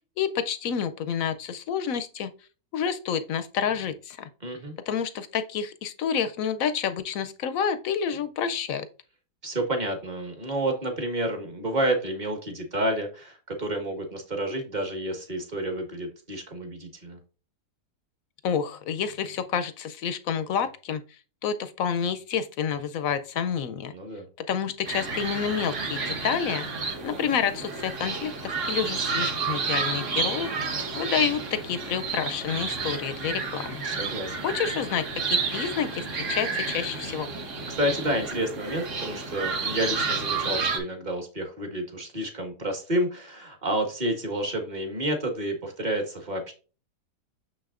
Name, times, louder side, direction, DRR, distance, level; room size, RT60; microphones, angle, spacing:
voice 1, 0.2-2.3 2.7-4.3 4.9-8.9 18.4-21.0 21.4-23.9 24.5-26.6 27.0-33.8 34.4-37.3, left 7 dB, 70° left, 11 dB, 0.9 m, -29 dB
voice 2, 4.4-4.7 9.4-17.2 23.9-24.3 33.8-34.4 37.7-46.5, right 1 dB, 30° right, 4 dB, 1.5 m, -30 dB
sound 1, 24.9-40.8, right 4 dB, 50° right, 1.6 m, -31 dB
6.8 x 6.0 x 2.5 m, 0.35 s
omnidirectional pair, 1.8 m